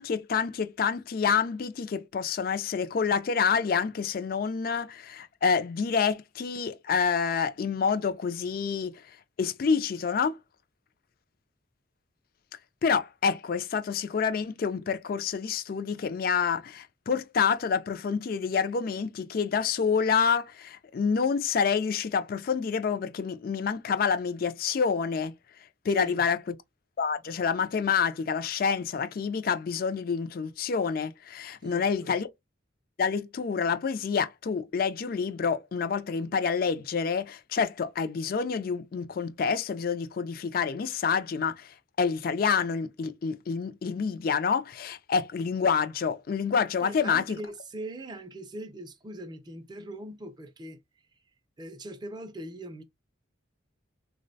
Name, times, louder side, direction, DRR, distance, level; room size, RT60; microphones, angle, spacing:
voice 1, 0.0-9.0 9.4-10.4 12.8-25.3 25.8-26.4 27.0-32.3 33.0-47.4, left 6 dB, 45° left, 0.3 m, -28 dB
voice 2, 25.9-26.2 31.6-32.1 46.8-50.8 51.6-52.8, right 1 dB, 20° right, 0.4 m, -41 dB
3.7 x 2.1 x 2.6 m
head